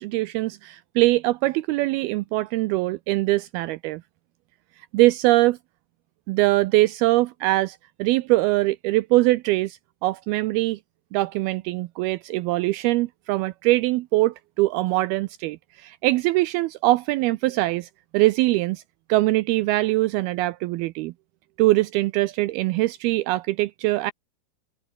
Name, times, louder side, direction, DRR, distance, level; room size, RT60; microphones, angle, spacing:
voice 1, 0.0-4.0 4.9-5.6 6.3-10.8 11.1-17.9 18.1-18.8 19.1-21.1 21.6-24.1, right 19 dB, 85° right, 2.2 m, -22 dB
omnidirectional pair, 5.0 m